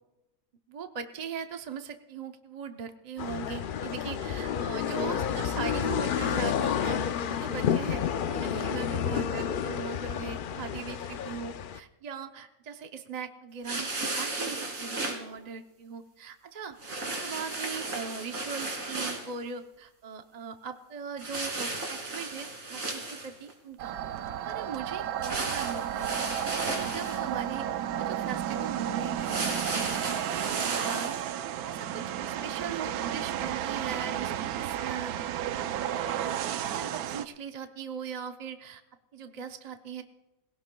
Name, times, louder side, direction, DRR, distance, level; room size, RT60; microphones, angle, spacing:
voice 1, 0.7-7.0 7.3-8.0 8.3-16.8 17.0-23.9 24.4-27.7 27.9-30.0 30.4-31.3 31.6-35.2 35.5-36.0 36.3-36.5 36.7-38.8 39.1-40.0, right 6 dB, 40° right, 6 dB, 0.6 m, -40 dB
sound 1, 3.2-11.8, left 8 dB, 80° left, 0.4 m, -30 dB
sound 2, 13.6-15.2 16.8-19.3 21.2-23.5 25.2-27.3 29.2-31.2, right 2 dB, 70° right, 2.7 m, -34 dB
sound 3, 23.8-37.2, right 10 dB, 90° right, 1.1 m, -32 dB
21.5 x 17.0 x 2.2 m, 0.99 s
omnidirectional pair, 1.5 m